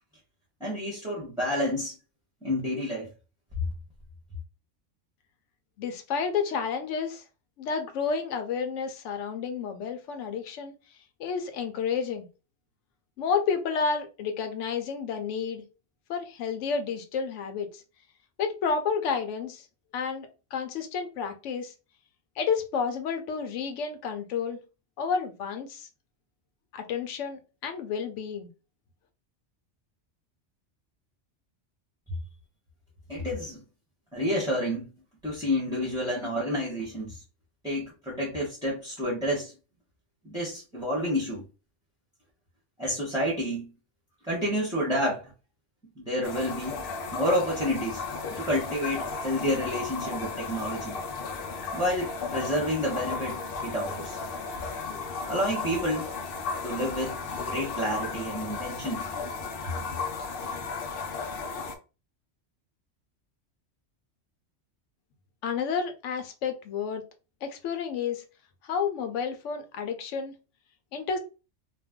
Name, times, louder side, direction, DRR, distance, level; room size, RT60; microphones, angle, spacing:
voice 1, 0.6-1.9 2.4-3.1 33.1-33.6 34.1-34.9 35.2-37.2 37.6-39.5 40.2-41.4 42.8-43.7 44.3-45.3 46.0-46.8 47.1-48.0 48.3-50.9 51.7-54.2 55.3-56.1 56.6-59.1 59.8-59.9, equal, 5° right, -5 dB, 0.8 m, -29 dB
voice 2, 5.8-7.2 7.6-10.7 11.2-12.3 13.2-15.6 16.1-17.8 18.4-19.7 19.9-21.7 22.4-24.6 25.0-25.9 26.7-28.5 65.4-67.0 67.4-68.2 68.6-70.4 70.9-71.2, left 6 dB, 90° left, 7 dB, 0.9 m, -30 dB
sound 1, 46.2-61.7, left 4 dB, 60° left, 0.7 m, -35 dB
2.6 x 2.2 x 3.5 m, 0.31 s
omnidirectional pair, 1.2 m